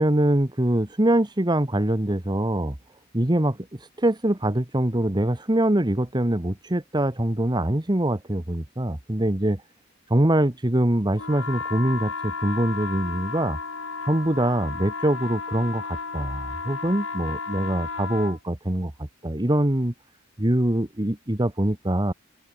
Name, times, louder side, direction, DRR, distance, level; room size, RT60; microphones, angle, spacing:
voice 1, 0.0-2.7 3.1-9.6 10.1-13.6 14.0-19.9 20.4-22.1, right 1 dB, 20° right, 1.4 m, -24 dB
sound 1, 11.2-18.4, left 4 dB, 65° left, 7.1 m, -33 dB
head